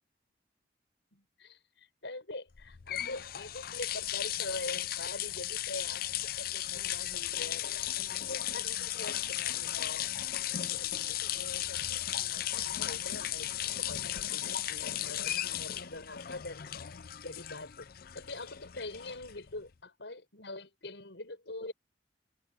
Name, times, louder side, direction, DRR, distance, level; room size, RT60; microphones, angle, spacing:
voice 1, 1.1-10.1 10.6-16.7 17.2-21.7, left 2 dB, 80° left, 5.9 m, -44 dB
sound 1, 2.6-19.6, left 12 dB, 55° left, 0.5 m, -36 dB
open air
head